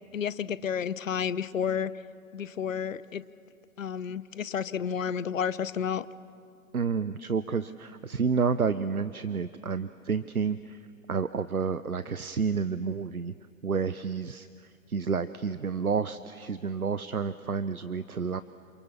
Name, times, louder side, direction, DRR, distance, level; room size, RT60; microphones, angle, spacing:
voice 1, 0.1-1.9 2.3-3.2 3.8-6.0, left 7 dB, 65° left, 16 dB, 1.0 m, -31 dB
voice 2, 6.7-10.8 11.1-13.3 13.6-18.4, right 5 dB, 85° right, 14 dB, 0.8 m, -30 dB
28.5 x 28.0 x 7.2 m, 2.3 s
figure-of-eight pair, 110°, 42 cm